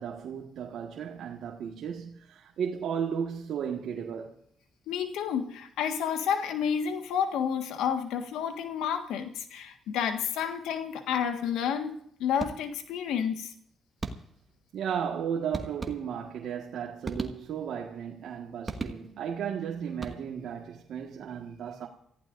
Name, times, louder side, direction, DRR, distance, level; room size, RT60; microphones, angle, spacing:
voice 1, 0.0-4.4 14.7-21.9, right 7 dB, 70° right, 1.6 m, -34 dB
voice 2, 4.9-13.5, left 8 dB, 90° left, 1.6 m, -30 dB
sound 1, 12.4-13.0 14.0-14.6 15.5-16.4 17.0-17.8 18.7-19.4 19.9-20.6, right 3 dB, 25° right, 1.9 m, -38 dB
28.5 x 15.5 x 2.6 m
cardioid pair, 90°, 0 cm